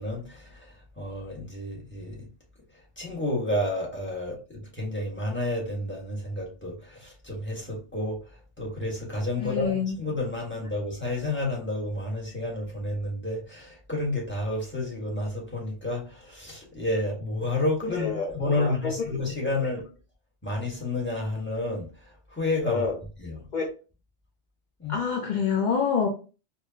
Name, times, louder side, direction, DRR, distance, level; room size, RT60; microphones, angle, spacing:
voice 1, 0.0-2.3 3.0-19.8 20.4-21.9 22.3-22.8 23.2-23.4 24.8-24.9, left 2 dB, 10° left, 1.4 m, -30 dB
voice 2, 9.4-10.0 17.9-18.9 22.6-23.0 23.5-23.6 24.9-26.1, left 6 dB, 45° left, 0.7 m, -27 dB
4.6 x 2.7 x 2.7 m
omnidirectional pair, 1.3 m